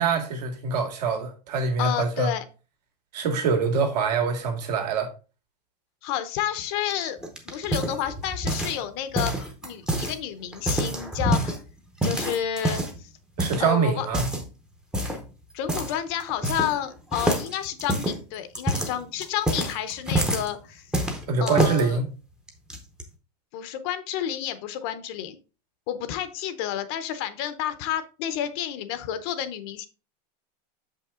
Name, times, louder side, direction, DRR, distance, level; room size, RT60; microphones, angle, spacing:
voice 1, 0.0-2.3 3.1-5.1 13.4-14.2 21.3-22.1, right 5 dB, 70° right, 2.2 m, -24 dB
voice 2, 1.8-2.4 6.0-7.2 7.5-11.6 12.0-13.1 13.6-14.1 15.5-20.9 21.4-22.0 23.5-25.4 25.9-29.9, left 10 dB, 35° left, 0.7 m, -30 dB
sound 1, 6.9-8.8 9.1-10.1 10.5-11.6 12.0-13.0 13.4-13.6 14.1-14.5 14.9-15.2 15.7-15.9 16.2-16.8 17.1-20.5 20.9-21.8 22.5-23.0, right 1 dB, 5° right, 0.7 m, -27 dB
6.9 x 5.6 x 3.6 m
supercardioid pair, 170°, 21 cm